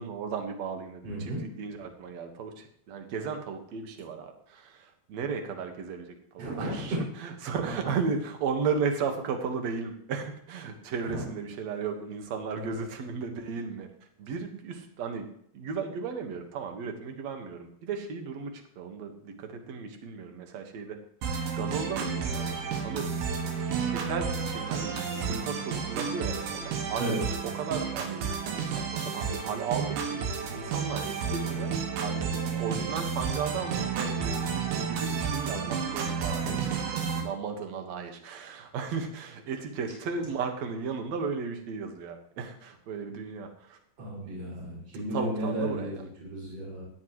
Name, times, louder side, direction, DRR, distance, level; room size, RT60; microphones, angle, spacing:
voice 1, 0.0-13.9 14.2-15.3 15.5-21.0 21.5-27.0 27.3-31.7 32.0-43.8 45.1-46.0, right 5 dB, 60° right, 5 dB, 2.0 m, -35 dB
voice 2, 1.0-1.4 6.4-7.0 11.1-11.3 12.6-12.8 27.0-27.2 36.4-37.0 44.0-46.8, right 1 dB, 35° right, -5 dB, 7.0 m, -34 dB
sound 1, 21.2-37.2, right 6 dB, 80° right, 4.3 m, -31 dB
16.5 x 13.0 x 3.2 m, 0.67 s
omnidirectional pair, 5.2 m